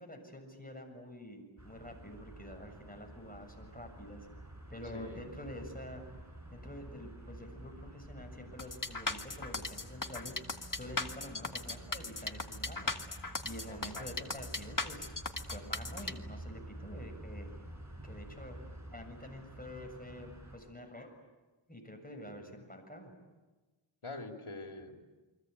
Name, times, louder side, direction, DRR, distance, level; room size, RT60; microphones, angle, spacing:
voice 1, 0.0-4.3 4.7-6.0 6.5-10.4 10.7-12.9 13.4-17.5 18.0-18.6 18.9-21.1 21.7-23.1, left 1 dB, 15° left, 4 dB, 7.2 m, -47 dB
sound 1, 1.6-20.6, right 1 dB, 35° right, 5.7 m, -49 dB
voice 2, 4.9-5.3 13.7-14.5 22.3-22.6 24.0-25.0, left 2 dB, 85° left, 3 dB, 3.2 m, -46 dB
sound 2, 8.6-16.1, left 3 dB, 40° left, 1.8 m, -37 dB
29.0 x 23.5 x 8.4 m, 1.2 s
wide cardioid pair, 40°, 49 cm